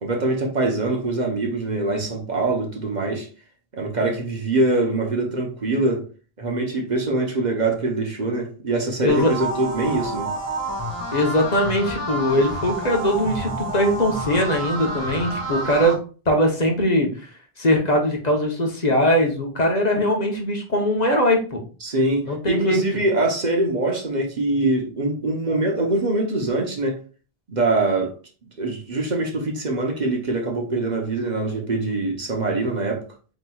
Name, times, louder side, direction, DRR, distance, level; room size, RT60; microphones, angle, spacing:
voice 1, 0.0-3.3 3.7-6.0 6.4-10.3 21.8-27.0 27.5-28.1 28.6-33.0, right 2 dB, 45° right, 1 dB, 1.0 m, -23 dB
sound 1, 9.1-15.9, right 1 dB, 15° left, 1.7 m, -29 dB
voice 2, 11.1-15.9 16.3-17.3 17.6-21.6 22.2-22.8, equal, 45° left, 2 dB, 1.0 m, -21 dB
7.6 x 3.0 x 2.3 m, 0.37 s
omnidirectional pair, 1.0 m